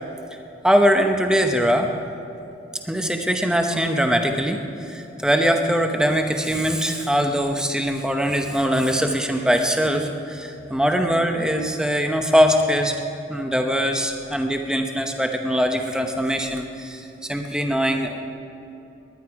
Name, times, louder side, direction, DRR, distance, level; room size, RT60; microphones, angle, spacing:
voice 1, 0.6-1.9 2.9-12.9 13.3-18.2, equal, 5° right, 4 dB, 0.8 m, -22 dB
19.5 x 11.0 x 4.8 m, 2.8 s
head